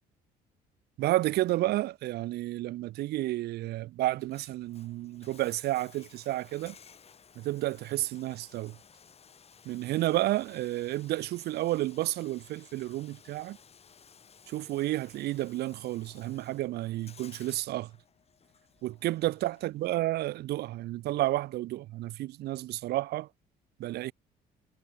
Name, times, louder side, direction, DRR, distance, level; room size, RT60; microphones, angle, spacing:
voice 1, 1.0-6.7 7.4-8.8 9.6-13.6 14.5-17.9 18.8-23.3 23.8-24.1, right 16 dB, 75° right, 0.9 m, -31 dB
Bathtub (filling or washing), 4.1-20.0, left 6 dB, 35° left, 4.9 m, -57 dB
cardioid pair, 110°, 17 cm